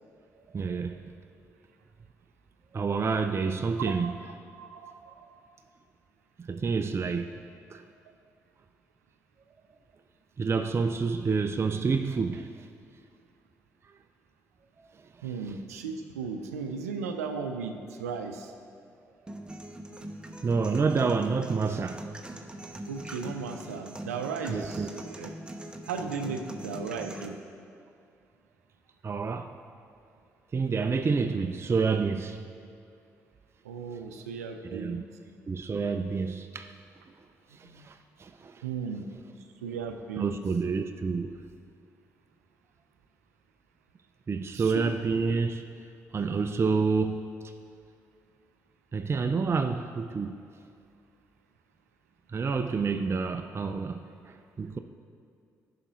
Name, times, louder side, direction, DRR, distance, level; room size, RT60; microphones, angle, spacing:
voice 1, 0.5-1.0 2.7-4.1 6.4-7.4 7.7-7.8 10.4-12.7 14.8-15.3 19.2-19.3 20.4-22.1 24.5-24.9 29.0-29.6 30.5-32.4 34.6-35.0 35.5-36.7 37.5-38.6 40.2-41.4 44.3-45.6 46.1-47.3 48.9-50.3 52.3-54.8, right 4 dB, 35° right, 7 dB, 0.5 m, -28 dB
voice 2, 4.5-5.5 15.2-18.5 22.9-25.3 25.9-27.4 33.6-35.1 37.6-37.9 38.6-39.0 39.6-40.4 44.5-44.9, right 5 dB, 85° right, 6 dB, 0.5 m, -36 dB
sound 1, 19.3-27.3, right 1 dB, 10° right, 1.0 m, -42 dB
14.5 x 5.7 x 3.1 m, 2.4 s
hypercardioid pair, 45°, 8 cm